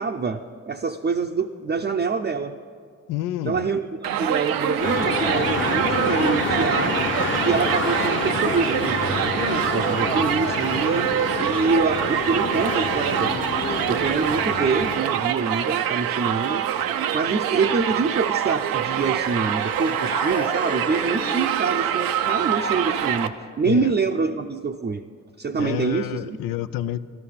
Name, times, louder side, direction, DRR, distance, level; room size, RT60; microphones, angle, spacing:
voice 1, 0.0-2.6 3.4-7.0 7.4-13.5 13.9-16.7 17.1-25.0 25.4-26.4, right 4 dB, 30° right, 2 dB, 0.6 m, -25 dB
voice 2, 3.1-3.7 23.6-23.9 25.6-27.0, left 12 dB, 75° left, 14 dB, 0.5 m, -28 dB
Crowd, 4.0-23.3, right 10 dB, 80° right, 0.6 m, -25 dB
sound 1, 4.8-15.0, left 4 dB, 35° left, 1.1 m, -28 dB
sound 2, 17.8-23.6, left 3 dB, 15° left, 0.5 m, -36 dB
13.0 x 13.0 x 5.7 m, 2.2 s
supercardioid pair, 45°, 34 cm